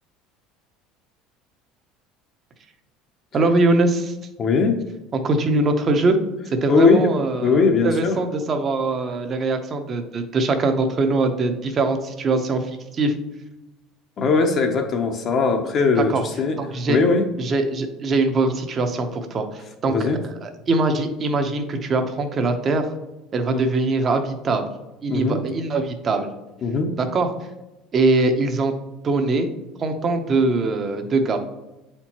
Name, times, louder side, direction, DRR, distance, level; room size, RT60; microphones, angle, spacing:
voice 1, 3.3-4.1 5.1-6.2 6.5-13.1 16.0-16.2 16.6-17.0 17.4-22.9 23.3-24.6 25.0-26.3 27.0-27.3 27.9-28.7 29.0-29.5 29.8-31.4, right 3 dB, 30° right, 7 dB, 0.7 m, -22 dB
voice 2, 4.4-4.8 6.7-7.1 7.4-8.2 14.2-16.1 16.4-16.6 16.9-17.2 19.9-20.2 23.5-23.6 25.1-25.4 26.6-26.9, left 4 dB, 35° left, 3 dB, 0.6 m, -19 dB
7.7 x 4.4 x 2.9 m, 0.98 s
cardioid pair, 155°, 0 cm